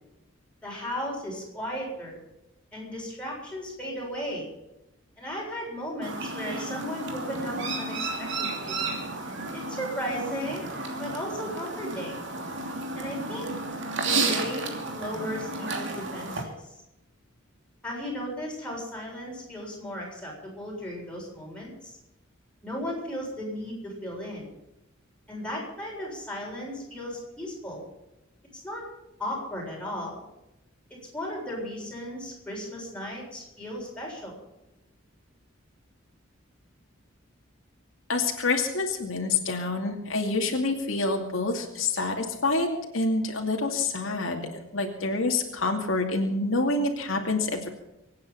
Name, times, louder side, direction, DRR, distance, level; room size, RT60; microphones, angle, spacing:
voice 1, 0.6-2.2 2.7-4.5 5.2-8.8 9.5-10.7 11.0-12.3 13.0-13.5 14.0-16.5 17.8-22.0 22.6-24.4 25.3-27.8 28.6-28.8 29.2-30.2 31.1-34.4, equal, 5° left, -4 dB, 7.2 m, -35 dB
Chirp tweet, 6.0-16.4, right 3 dB, 60° right, 2.8 m, -32 dB
voice 2, 38.1-47.7, left 3 dB, 80° left, 1 dB, 2.5 m, -27 dB
24.5 x 9.5 x 5.8 m, 0.92 s
head